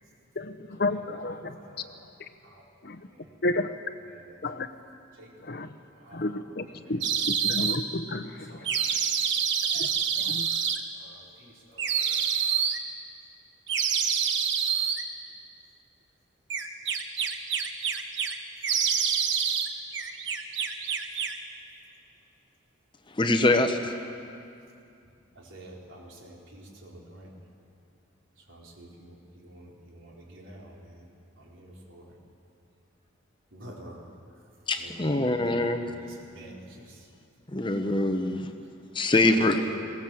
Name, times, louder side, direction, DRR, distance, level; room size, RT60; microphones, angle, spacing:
voice 1, 0.3-2.3 2.8-3.1 3.4-3.8 4.4-4.7 5.4-5.8 6.1-8.8 9.7-10.5, left 2 dB, 50° left, 10 dB, 0.9 m, -32 dB
voice 2, 1.5-2.0 2.4-2.7 3.0-3.4 4.3-4.4 5.1-5.5 5.9-6.4 6.8-7.1 8.5-9.1 10.9-12.3 25.3-27.3 28.4-31.1 31.4-32.2 33.5-34.1 34.8-37.1 38.3-38.7 39.3-39.8, right 1 dB, 75° right, -2 dB, 4.2 m, -48 dB
sound 1, 7.0-7.8 8.6-10.8 11.8-12.8 13.7-15.0 16.5-18.3 18.6-19.7 19.9-21.4, right 7 dB, 60° right, 1.3 m, -27 dB
voice 3, 23.1-23.9 34.7-35.9 37.5-38.5 38.9-39.6, left 2 dB, 25° left, 7 dB, 0.9 m, -24 dB
20.5 x 18.0 x 7.8 m, 2.5 s
head